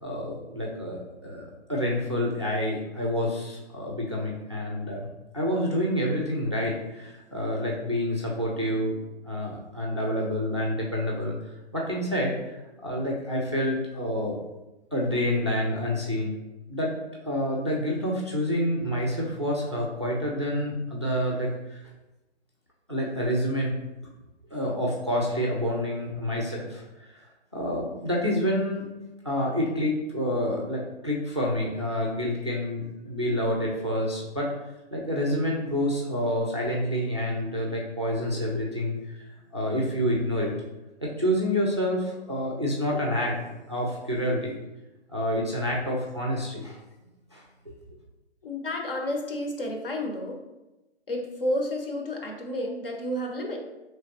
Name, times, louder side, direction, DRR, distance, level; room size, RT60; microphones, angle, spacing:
voice 1, 0.0-5.1 5.3-11.4 11.7-14.4 14.9-16.3 16.7-16.9 17.2-21.8 22.9-23.7 24.5-26.8 27.1-27.2 27.5-28.8 29.2-34.5 34.9-40.5 41.0-44.6 45.1-46.8 47.3-47.4, equal, 25° right, -3 dB, 0.4 m, -28 dB
voice 2, 48.4-50.4 51.1-53.7, left 1 dB, 55° left, 2 dB, 0.9 m, -31 dB
4.8 x 3.1 x 2.8 m, 1.0 s
hypercardioid pair, 175°, 33 cm